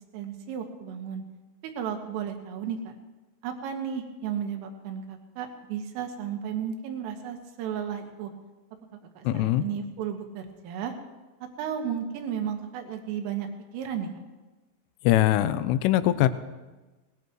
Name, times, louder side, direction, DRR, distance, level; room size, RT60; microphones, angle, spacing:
voice 1, 0.1-1.2 1.6-2.9 3.4-8.3 9.2-10.9 11.6-13.5 13.7-14.1, right 8 dB, 80° right, 4 dB, 3.9 m, -33 dB
voice 2, 9.2-9.6 15.0-16.3, left 13 dB, 85° left, 12 dB, 3.1 m, -22 dB
20.5 x 19.0 x 3.1 m, 1.2 s
omnidirectional pair, 5.9 m